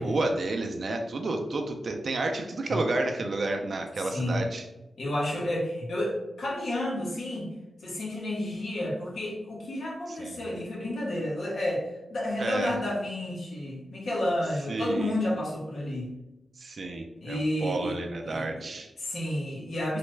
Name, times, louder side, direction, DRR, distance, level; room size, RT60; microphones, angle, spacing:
voice 1, 0.0-4.6 10.1-10.4 12.4-12.7 14.7-15.1 16.6-18.9, right 2 dB, 55° right, 3 dB, 0.3 m, -30 dB
voice 2, 4.0-4.4 5.0-7.5 7.8-16.1 17.2-18.7 19.0-20.0, left 1 dB, 75° left, -4 dB, 1.0 m, -31 dB
3.2 x 2.0 x 3.2 m, 0.95 s
wide cardioid pair, 105°, 0 cm